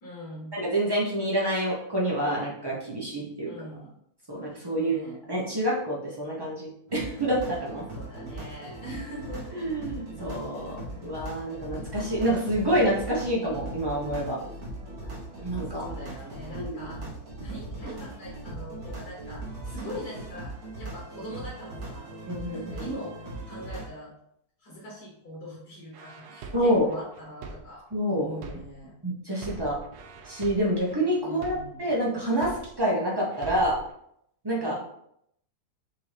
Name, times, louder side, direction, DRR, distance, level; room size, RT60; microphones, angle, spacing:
voice 1, 0.0-0.6 3.5-3.9 4.7-5.2 7.9-9.8 15.7-17.1 17.4-22.1 22.5-23.2 23.5-24.1 24.6-28.9 31.2-31.9 34.6-34.8, equal, 60° left, -5 dB, 1.7 m, -42 dB
voice 2, 0.5-3.5 4.3-5.0 5.3-7.8 9.5-14.4 15.4-15.9 16.5-16.8 22.2-22.9 26.5-26.9 27.9-28.3 29.0-29.8 30.3-32.5 32.8-33.8 34.4-34.7, right 1 dB, 35° right, -4 dB, 0.4 m, -27 dB
sound 1, 6.9-23.9, right 1 dB, 50° right, 1.6 m, -39 dB
sound 2, 25.9-28.9 29.3-32.9 33.3-33.9, right 4 dB, 70° right, 1.1 m, -43 dB
5.5 x 2.7 x 3.3 m, 0.73 s
omnidirectional pair, 1.9 m